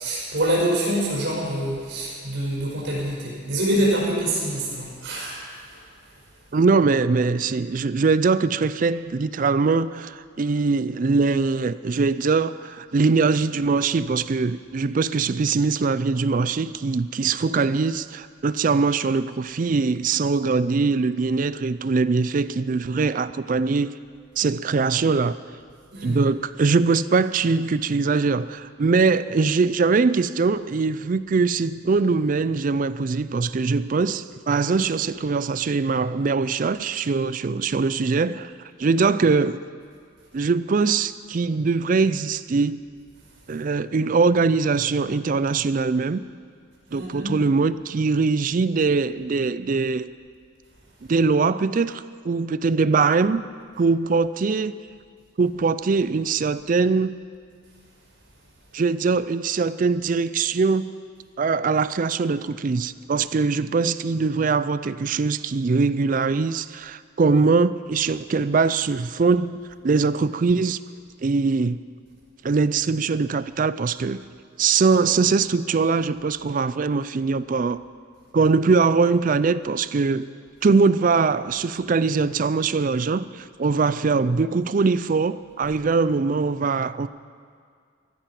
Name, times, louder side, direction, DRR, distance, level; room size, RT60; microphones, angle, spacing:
voice 1, 0.0-5.4 5.7-5.8 25.9-26.2 46.9-47.4, right 1 dB, 60° right, -3 dB, 5.3 m, -25 dB
voice 2, 6.5-23.9 24.4-25.3 26.0-38.5 38.8-39.6 40.3-42.8 43.5-46.2 46.9-50.1 51.1-53.4 53.8-54.8 55.4-57.1 58.7-60.9 61.4-70.8 71.2-71.8 72.4-74.2 74.6-77.8 78.3-80.3 80.6-87.1, right 4 dB, 40° right, 15 dB, 0.4 m, -22 dB
14.5 x 14.0 x 5.9 m, 2.1 s
head